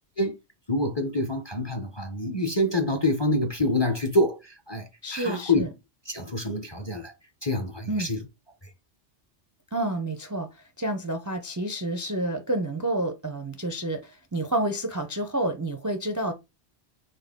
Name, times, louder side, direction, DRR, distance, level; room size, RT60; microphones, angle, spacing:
voice 1, 0.7-5.6 6.1-7.1 7.4-8.2, left 1 dB, 30° left, 0.6 m, -26 dB
voice 2, 5.0-5.7 7.9-8.1 9.7-16.3, right 1 dB, 25° right, 0.4 m, -29 dB
4.2 x 3.5 x 3.5 m
omnidirectional pair, 1.2 m